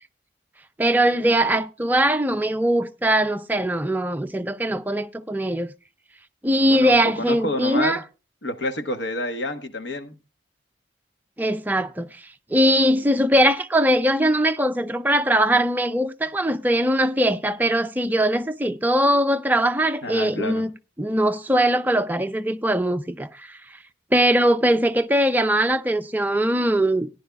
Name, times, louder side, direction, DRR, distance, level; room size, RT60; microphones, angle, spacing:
voice 1, 0.8-5.7 6.4-8.0 11.4-12.2 12.5-20.7 21.0-23.5 24.1-27.1, right 1 dB, 10° right, 0.5 m, -21 dB
voice 2, 6.7-8.0 8.4-10.2 20.0-20.6, left 1 dB, 75° left, 1.2 m, -28 dB
17.5 x 10.5 x 2.3 m
head